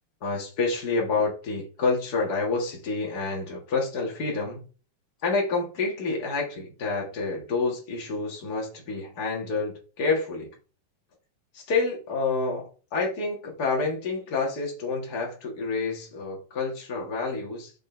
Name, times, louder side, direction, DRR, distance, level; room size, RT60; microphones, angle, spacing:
voice 1, 0.2-4.6 5.2-10.5 11.5-17.7, left 4 dB, 70° left, 0.9 m, -28 dB
6.5 x 5.6 x 3.3 m
omnidirectional pair, 4.7 m